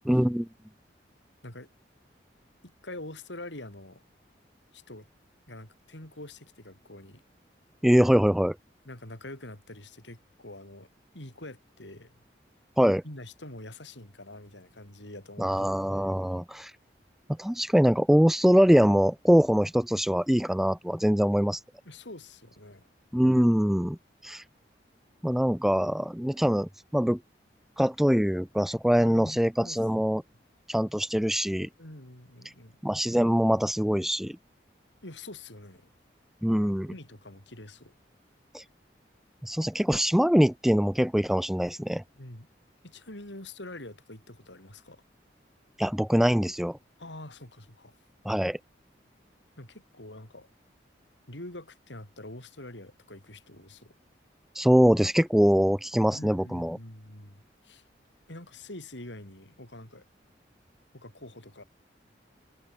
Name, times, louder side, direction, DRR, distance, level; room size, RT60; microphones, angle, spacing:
voice 1, 0.1-0.5 7.8-8.6 12.8-13.0 15.4-16.7 17.4-21.6 23.1-24.0 24.2-24.4 25.2-27.2 27.8-30.2 30.7-31.7 32.8-34.4 36.4-36.9 38.5-38.6 39.4-42.0 45.8-46.8 48.3-48.6 54.5-56.8, equal, ahead, 0.3 m, -23 dB
voice 2, 2.6-4.0 4.7-5.0 5.5-7.2 8.8-10.9 11.1-12.2 13.0-16.1 21.9-22.8 29.0-29.8 31.8-32.8 35.0-35.9 36.9-37.9 42.1-42.5 42.8-45.0 47.0-48.0 49.6-50.5 51.3-53.9 56.1-57.8 58.3-60.1 60.9-61.6, left 1 dB, 85° left, 6.4 m, -45 dB
head